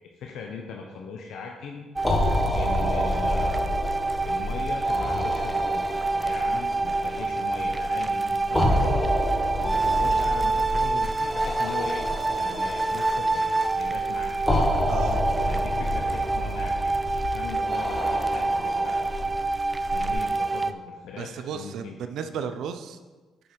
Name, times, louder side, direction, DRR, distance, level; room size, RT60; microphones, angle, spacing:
voice 1, 0.2-1.9 2.5-4.0 4.2-9.1 9.6-12.0 12.3-13.5 13.8-14.6 15.4-19.1 19.9-22.0, left 5 dB, 80° left, 1 dB, 0.7 m, -39 dB
sound 1, 2.0-20.1, left 1 dB, 10° left, 1.3 m, -29 dB
sound 2, 2.0-20.7, right 3 dB, 15° right, 0.4 m, -27 dB
voice 2, 14.9-15.2 21.2-23.0, right 7 dB, 75° right, 9 dB, 0.5 m, -34 dB
7.9 x 5.5 x 4.4 m, 1.3 s
cardioid pair, 90°, 0 cm